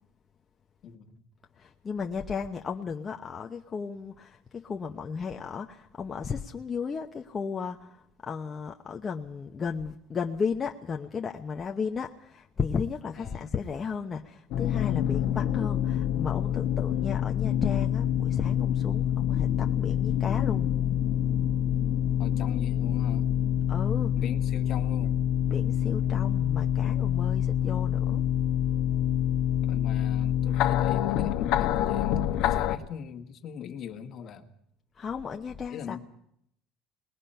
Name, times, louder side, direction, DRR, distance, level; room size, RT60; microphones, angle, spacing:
voice 1, 0.8-1.3 13.2-13.5 22.2-23.3 24.2-25.2 29.6-34.5 35.7-36.0, left 8 dB, 50° left, 7 dB, 1.9 m, -41 dB
voice 2, 1.6-20.7 23.7-24.1 25.5-28.2 35.0-36.0, left 5 dB, 30° left, 2 dB, 1.0 m, -34 dB
sound 1, 14.5-32.8, left 10 dB, 65° left, 1.5 m, -26 dB
22.0 x 20.5 x 5.7 m, 0.73 s
cardioid pair, 125°, 0 cm